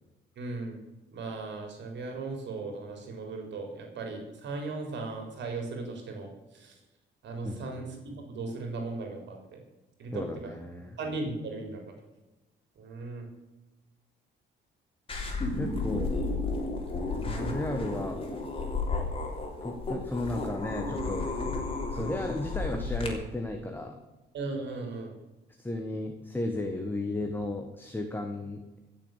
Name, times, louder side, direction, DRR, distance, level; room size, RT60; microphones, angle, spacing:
voice 1, 0.4-0.8 1.1-6.3 6.5-6.7 7.2-7.9 8.3-9.6 10.0-10.6 11.0-11.8 12.8-13.3 24.3-25.1, right 3 dB, 65° right, 3 dB, 3.9 m, -37 dB
voice 2, 7.4-7.8 10.1-11.0 15.6-16.2 17.2-18.2 19.6-21.3 21.9-24.0 25.6-28.8, left 2 dB, 10° left, 4 dB, 1.7 m, -34 dB
sound 1, 15.1-23.1, left 3 dB, 30° left, 3.6 m, -32 dB
16.0 x 7.0 x 9.1 m, 1.1 s
cardioid pair, 120°, 20 cm